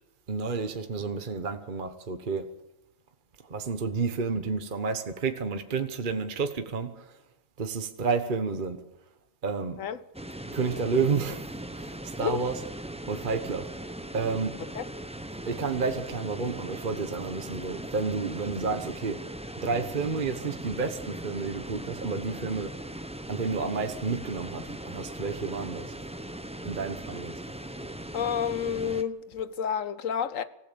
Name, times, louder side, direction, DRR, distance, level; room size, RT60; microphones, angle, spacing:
voice 1, 0.3-2.5 3.4-7.2 7.6-8.8 9.4-9.8 10.5-12.5 13.1-13.7 14.1-14.6 15.4-19.2 19.6-23.0 23.3-26.0 26.6-27.4, right 4 dB, 40° right, 1.2 m, -30 dB
sound 1, 10.1-29.0, right 1 dB, 5° right, 0.7 m, -39 dB
voice 2, 28.1-30.4, left 8 dB, 70° left, 1.3 m, -30 dB
26.0 x 15.5 x 6.9 m
omnidirectional pair, 1.5 m